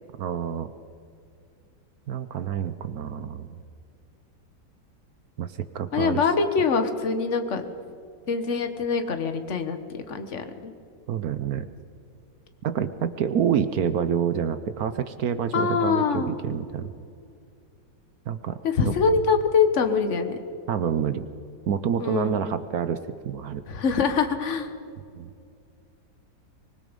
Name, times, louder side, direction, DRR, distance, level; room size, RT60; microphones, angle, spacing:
voice 1, 0.2-0.7 2.1-3.5 5.4-6.3 11.1-11.7 12.6-16.9 18.3-18.6 18.8-18.9 20.7-21.2 21.7-23.0 23.2-23.6 25.2-25.3, right 8 dB, 60° right, 12 dB, 1.1 m, -27 dB
voice 2, 5.9-7.6 8.3-10.7 15.5-16.3 18.6-20.4 22.0-22.3 23.7-24.7, left 5 dB, 40° left, 7 dB, 1.5 m, -24 dB
24.5 x 20.0 x 5.3 m, 2.4 s
omnidirectional pair, 2.1 m